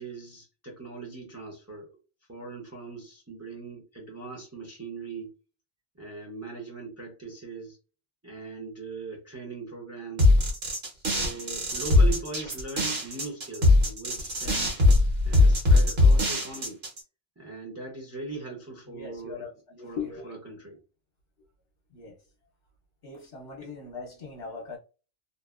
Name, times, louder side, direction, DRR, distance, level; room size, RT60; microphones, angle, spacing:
voice 1, 0.0-1.9 2.3-5.4 6.0-7.8 8.2-10.3 10.9-14.8 15.2-16.8 17.4-19.5 19.8-20.8, right 3 dB, 15° right, 0.6 m, -40 dB
sound 1, 10.2-17.0, left 2 dB, 60° right, 1.2 m, -21 dB
voice 2, 18.9-20.4 21.9-22.2 23.0-24.8, left 5 dB, 60° left, 0.9 m, -40 dB
2.7 x 2.5 x 2.3 m
omnidirectional pair, 1.2 m